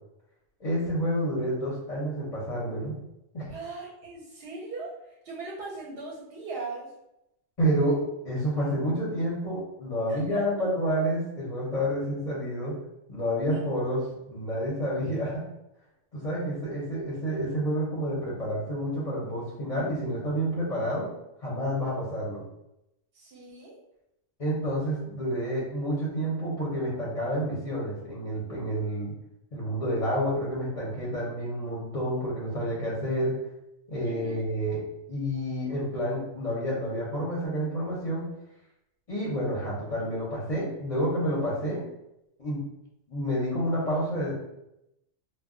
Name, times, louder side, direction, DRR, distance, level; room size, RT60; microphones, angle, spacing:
voice 1, 0.6-2.9 3.3-3.4 7.6-8.0 8.2-12.7 13.1-15.4 16.1-21.1 21.4-22.4 24.4-29.1 29.5-33.3 33.9-34.8 35.1-38.3 39.1-41.8 42.4-42.6 43.1-44.3, equal, 40° left, -6 dB, 0.6 m, -29 dB
voice 2, 3.5-5.0 5.2-6.9 10.1-10.4 13.5-13.6 23.1-23.8 34.0-34.4, right 3 dB, 60° right, -3 dB, 0.7 m, -39 dB
2.2 x 2.1 x 3.6 m, 0.85 s
omnidirectional pair, 1.3 m